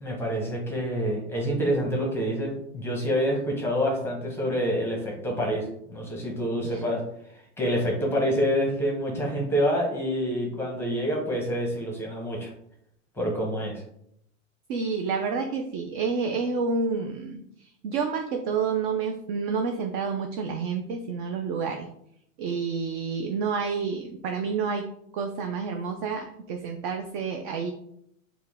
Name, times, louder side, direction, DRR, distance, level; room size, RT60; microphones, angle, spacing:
voice 1, 0.0-7.0 7.3-12.5 13.1-13.8, equal, 5° left, -1 dB, 0.9 m, -27 dB
voice 2, 14.7-21.9 22.4-27.7, right 5 dB, 40° right, 4 dB, 0.4 m, -29 dB
4.3 x 2.2 x 3.5 m, 0.72 s
hypercardioid pair, 130°, 40 cm